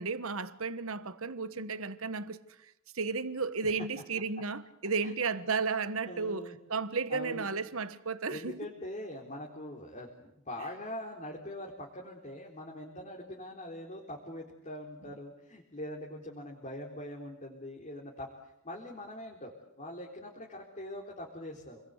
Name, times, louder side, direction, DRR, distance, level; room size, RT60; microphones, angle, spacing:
voice 1, 0.0-8.6, right 4 dB, 70° right, 1.3 m, -34 dB
voice 2, 6.0-6.6 7.1-7.5 8.3-21.8, left 1 dB, 35° left, 4.0 m, -43 dB
29.5 x 22.0 x 8.2 m
head